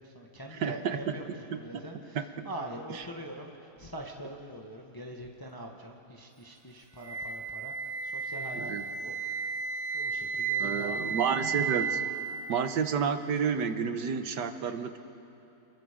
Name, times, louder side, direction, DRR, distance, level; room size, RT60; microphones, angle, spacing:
voice 1, 0.0-9.1 9.4-9.6 9.9-11.3, right 1 dB, 15° left, 1 dB, 1.3 m, -43 dB
voice 2, 0.6-1.1 2.1-2.2 8.5-8.8 10.6-12.0 12.5-15.0, right 6 dB, 85° right, 9 dB, 1.7 m, -30 dB
Wind instrument woodwind instrument, 7.0-13.0, right 6 dB, 70° right, 1.3 m, -33 dB
29.0 x 21.0 x 5.2 m, 3.0 s
omnidirectional pair, 1.8 m